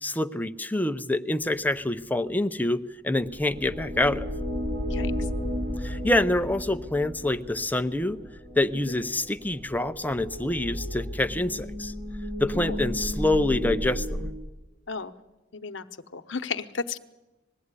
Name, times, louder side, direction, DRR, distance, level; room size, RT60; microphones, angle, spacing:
voice 1, 0.0-4.2 5.8-8.2 8.6-11.9 12.4-14.2, left 1 dB, 10° left, 9 dB, 0.6 m, -26 dB
sound 1, 3.3-14.3, equal, 35° right, 3.1 m, -33 dB
voice 2, 4.9-5.3 8.7-9.0 12.5-12.8 14.9-15.1 15.5-15.9 16.1-17.0, left 5 dB, 75° left, 10 dB, 1.0 m, -34 dB
20.5 x 15.5 x 9.8 m, 1.1 s
head